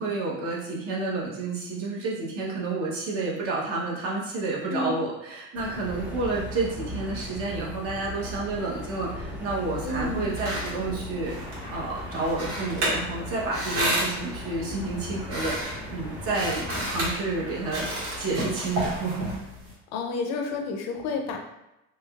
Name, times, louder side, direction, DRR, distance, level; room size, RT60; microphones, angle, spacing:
voice 1, 0.0-11.4 11.7-19.3, right 3 dB, 50° right, -3 dB, 0.8 m, -30 dB
voice 2, 4.7-5.0 9.8-10.3 19.9-21.4, left 3 dB, 60° left, 3 dB, 0.5 m, -30 dB
sound 1, 5.5-17.1, equal, 5° right, 0.3 m, -38 dB
sound 2, 10.0-19.7, right 1 dB, 80° right, 1.5 m, -32 dB
sound 3, 11.2-19.4, right 1 dB, 25° right, 1.3 m, -46 dB
3.1 x 2.8 x 2.3 m, 0.91 s
cardioid pair, 170°, 30 cm